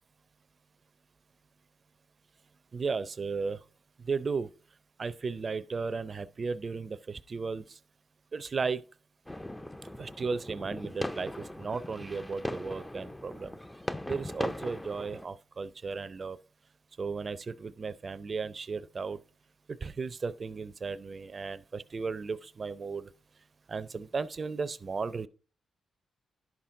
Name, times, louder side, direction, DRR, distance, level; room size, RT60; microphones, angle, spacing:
voice 1, 2.7-3.6 4.0-4.5 5.0-7.6 8.3-8.8 10.0-13.6 14.0-16.4 17.0-19.2 19.7-23.1 23.7-25.3, right 4 dB, 45° right, 0.5 m, -35 dB
sound 1, 9.3-15.3, left 1 dB, 10° left, 0.5 m, -39 dB
11.0 x 5.9 x 3.7 m
cardioid pair, 65°, 0 cm